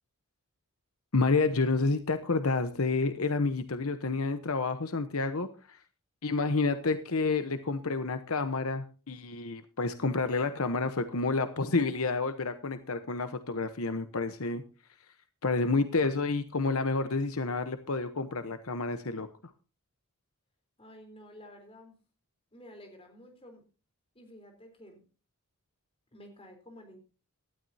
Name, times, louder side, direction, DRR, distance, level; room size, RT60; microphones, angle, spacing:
voice 1, 1.1-5.8 6.2-14.6 15.4-19.3, left 3 dB, 75° left, 10 dB, 1.0 m, -29 dB
voice 2, 20.8-21.9 22.5-23.6 24.2-25.0 26.1-27.0, left 1 dB, 25° left, 5 dB, 3.7 m, -51 dB
18.0 x 12.5 x 2.8 m, 0.35 s
head